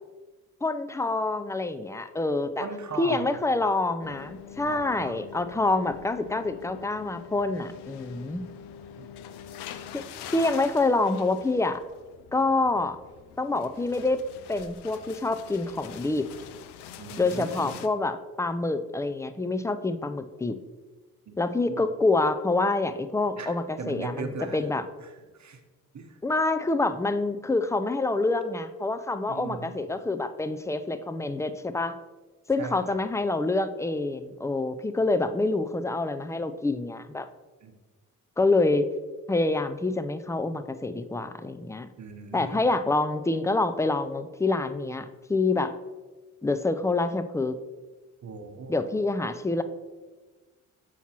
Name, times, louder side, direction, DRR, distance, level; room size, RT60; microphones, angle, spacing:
voice 1, 0.6-2.7 3.0-8.4 9.9-11.8 12.3-13.0 13.4-14.2 14.5-16.3 17.2-20.5 21.4-24.8 26.2-31.9 32.5-37.3 38.4-38.9 39.3-41.9 42.3-45.7 46.4-47.6 48.7-49.6, left 2 dB, 10° left, 11 dB, 0.3 m, -27 dB
voice 2, 2.6-3.4 4.6-5.2 9.0-9.1 17.0-17.7 21.3-21.4 21.7-21.8 23.4-24.6 25.0-25.1 25.3-25.6 25.9-26.2 29.3-29.7 32.6-33.0 37.6-37.7 42.0-42.6 48.2-48.7, right 4 dB, 45° right, 5 dB, 0.9 m, -38 dB
sound 1, 4.0-17.9, left 9 dB, 75° left, 0.5 m, -45 dB
7.1 x 4.5 x 2.9 m, 1.3 s
hypercardioid pair, 45°, 40 cm